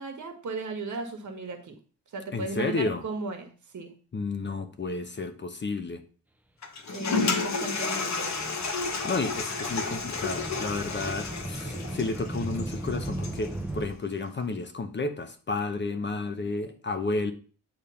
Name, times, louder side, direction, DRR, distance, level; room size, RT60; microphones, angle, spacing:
voice 1, 0.0-1.8 2.1-3.9 6.9-8.5, right 3 dB, 55° right, 5 dB, 1.7 m, -36 dB
voice 2, 2.3-3.0 4.1-6.0 9.0-17.3, left 3 dB, 30° left, 8 dB, 0.8 m, -31 dB
Toilet flush, 6.6-13.5, left 4 dB, 50° left, 1.3 m, -32 dB
sound 1, 7.4-13.9, right 1 dB, 5° right, 0.7 m, -37 dB
9.0 x 3.5 x 5.7 m, 0.39 s
wide cardioid pair, 135°, 35 cm